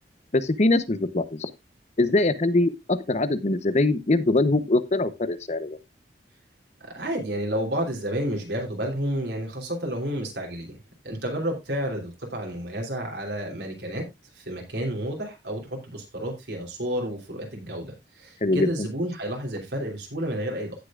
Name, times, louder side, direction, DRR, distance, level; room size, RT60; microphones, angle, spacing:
voice 1, 0.3-1.5 2.0-5.8 18.4-18.7, left 2 dB, 40° left, 0.9 m, -23 dB
voice 2, 6.9-10.8 11.0-14.0 14.3-20.8, equal, 75° right, 3.3 m, -30 dB
16.5 x 6.8 x 2.4 m
head